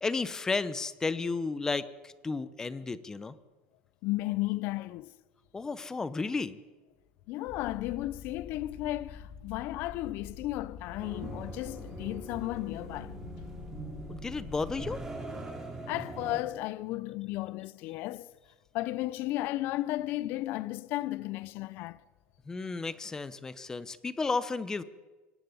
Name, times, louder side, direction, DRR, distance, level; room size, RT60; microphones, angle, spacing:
voice 1, 0.0-3.3 5.5-6.6 14.1-15.0 22.5-24.8, left 4 dB, 10° left, 0.9 m, -33 dB
voice 2, 4.0-5.2 7.3-13.1 15.9-18.3 18.7-22.1, left 17 dB, 50° left, 0.7 m, -34 dB
sound 1, 7.5-15.1, left 6 dB, 70° left, 2.3 m, -46 dB
sound 2, 11.0-16.4, right 3 dB, 10° right, 3.7 m, -42 dB
24.0 x 18.0 x 9.5 m
cardioid pair, 165°, 5 cm